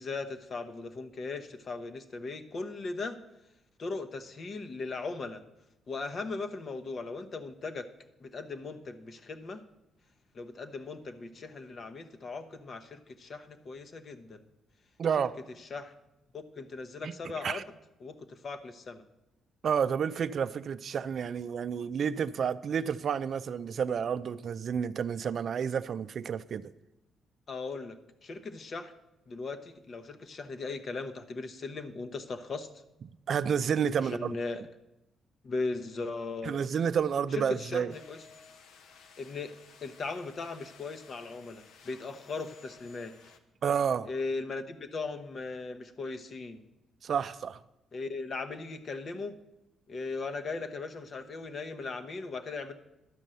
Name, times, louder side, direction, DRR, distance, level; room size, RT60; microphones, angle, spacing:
voice 1, 0.0-3.2 3.8-5.4 5.9-7.9 8.2-9.6 10.3-14.4 15.2-15.3 15.7-15.9 16.3-17.6 18.0-19.0 27.5-28.0 28.2-28.9 29.3-32.7 34.1-34.6 35.4-36.5 37.3-38.2 39.2-39.5 39.8-43.1 44.1-46.6 47.9-49.4 49.9-52.7, left 3 dB, 45° left, 8 dB, 0.9 m, -38 dB
voice 2, 15.0-15.3 17.0-17.1 17.4-17.6 19.6-26.7 33.3-34.4 36.4-37.9 43.6-44.1 47.0-47.6, right 7 dB, 55° right, 13 dB, 0.4 m, -30 dB
sound 1, 37.9-43.4, left 5 dB, 80° left, 0.9 m, -56 dB
11.5 x 5.4 x 7.6 m, 0.93 s
cardioid pair, 90°, 0 cm